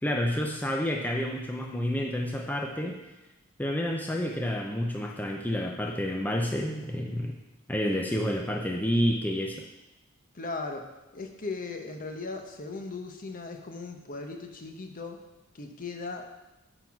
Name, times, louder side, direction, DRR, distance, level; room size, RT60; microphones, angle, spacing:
voice 1, 0.0-3.0 3.6-7.3 7.7-9.6, equal, 10° left, 0 dB, 0.6 m, -29 dB
voice 2, 10.3-15.2 15.5-16.3, left 3 dB, 45° left, 4 dB, 0.9 m, -38 dB
9.1 x 4.0 x 6.0 m, 1.0 s
head